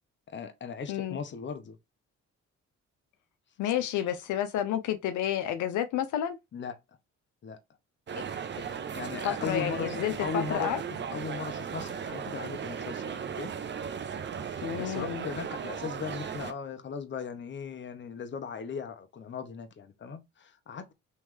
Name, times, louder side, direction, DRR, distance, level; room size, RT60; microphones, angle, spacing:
voice 1, 0.3-1.8 3.9-4.1 6.5-6.7 7.4-7.6 8.9-10.7 11.1-13.5 14.5-20.9, left 5 dB, 40° left, 0.7 m, -38 dB
voice 2, 3.6-6.4 8.1-8.2 8.6-8.7 9.2-10.8 14.6-15.2, left 11 dB, 75° left, 0.6 m, -30 dB
sound 1, 8.1-16.5, right 7 dB, 40° right, 0.6 m, -36 dB
3.1 x 3.1 x 3.5 m
cardioid pair, 90°, 30 cm